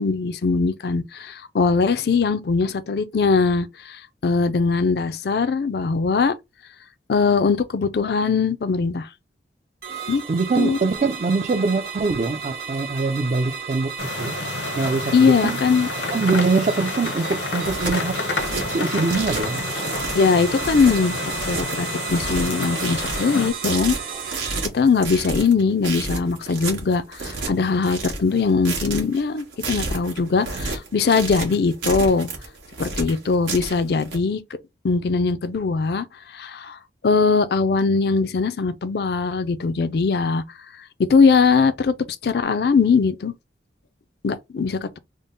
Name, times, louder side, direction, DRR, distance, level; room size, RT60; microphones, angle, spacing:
voice 1, 0.0-6.4 7.1-9.1 10.1-10.2 10.6-10.8 15.1-15.9 20.1-23.9 24.7-32.3 32.8-34.4 34.8-36.1 36.3-36.8 37.0-40.4 41.0-41.9 42.2-43.3 44.2-45.0, left 4 dB, 60° left, 0.4 m, -21 dB
sound 1, 9.8-24.6, right 6 dB, 55° right, 1.3 m, -33 dB
voice 2, 10.3-13.9 14.2-14.4 14.8-15.6 16.1-18.2 18.7-19.6, right 3 dB, 40° right, 0.4 m, -23 dB
sound 2, 14.0-23.5, left 3 dB, 80° left, 0.8 m, -29 dB
sound 3, 17.6-34.2, right 3 dB, 85° right, 1.4 m, -31 dB
3.7 x 2.1 x 3.8 m
head